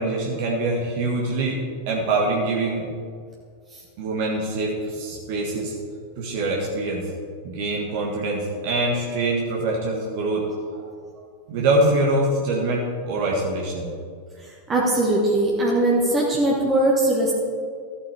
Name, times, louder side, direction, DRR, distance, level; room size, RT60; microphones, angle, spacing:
voice 1, 0.0-1.6 1.9-2.8 4.0-5.7 6.2-7.0 7.4-10.9 11.2-13.9, right 2 dB, 50° right, -2 dB, 1.7 m, -24 dB
voice 2, 14.7-17.3, right 1 dB, 25° right, -3 dB, 1.7 m, -20 dB
14.5 x 7.9 x 3.5 m, 2.1 s
figure-of-eight pair, 90°, 0 cm